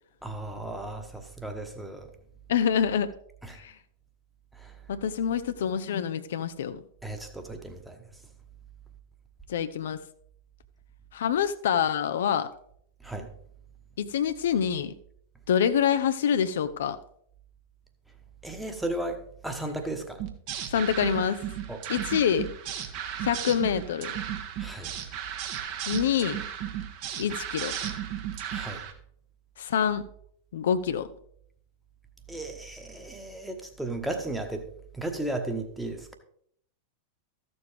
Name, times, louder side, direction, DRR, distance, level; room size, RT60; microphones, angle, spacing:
voice 1, 0.2-2.1 3.4-3.6 4.5-4.8 7.0-8.0 13.0-13.3 18.4-20.2 21.7-21.8 24.6-24.9 28.5-28.8 32.3-34.7 34.9-36.2, right 2 dB, 5° right, 5 dB, 1.2 m, -35 dB
voice 2, 2.5-3.1 3.5-3.8 4.9-6.8 9.5-10.0 11.1-12.5 14.0-14.9 15.5-17.0 20.7-21.4 21.9-22.5 23.2-24.1 25.9-26.4 27.2-27.7 29.6-30.0 30.5-31.1, left 8 dB, 60° left, 11 dB, 0.4 m, -26 dB
sound 1, 20.2-28.9, right 9 dB, 45° right, 1.1 m, -35 dB
13.5 x 6.9 x 3.4 m, 0.66 s
figure-of-eight pair, 90°, 0 cm